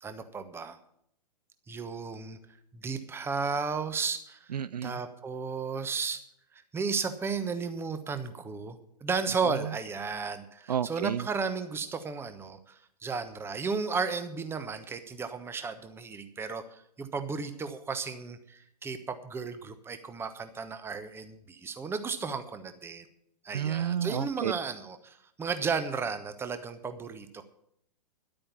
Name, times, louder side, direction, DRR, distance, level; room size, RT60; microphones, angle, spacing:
voice 1, 0.0-0.8 1.7-2.4 2.7-4.5 4.8-6.2 6.7-23.0 23.4-27.4, right 5 dB, 10° right, 10 dB, 1.1 m, -34 dB
voice 2, 4.5-5.0 10.7-11.2 23.5-24.5, right 9 dB, 70° right, 17 dB, 0.5 m, -30 dB
11.5 x 8.8 x 7.2 m, 0.72 s
figure-of-eight pair, 110°, 21 cm